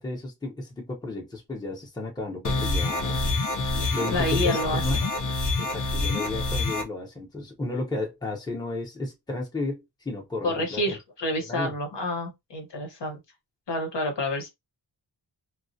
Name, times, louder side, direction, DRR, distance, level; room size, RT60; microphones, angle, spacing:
voice 1, 0.0-3.3 3.9-5.0 5.6-11.0 11.5-11.8, left 2 dB, 10° left, 0.7 m, -33 dB
sound 1, 2.4-6.8, left 2 dB, 45° left, 0.6 m, -27 dB
voice 2, 4.1-5.1 10.4-13.2 13.7-14.5, left 1 dB, 65° left, 1.0 m, -29 dB
2.3 x 2.1 x 2.6 m
wide cardioid pair, 125°, 46 cm